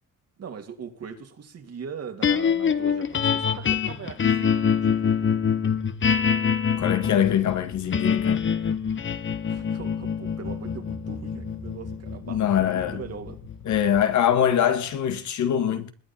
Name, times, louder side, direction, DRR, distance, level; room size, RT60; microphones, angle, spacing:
voice 1, 0.4-5.3 9.5-13.4, right 6 dB, 55° right, 2.7 m, -40 dB
sound 1, 2.2-14.5, left 7 dB, 40° left, 1.2 m, -25 dB
voice 2, 6.8-8.5 12.3-13.0 13.6-15.9, left 9 dB, 70° left, 1.7 m, -23 dB
sound 2, 7.4-14.0, left 4 dB, 85° left, 5.2 m, -45 dB
21.0 x 9.0 x 4.4 m
cardioid pair, 90°, 30 cm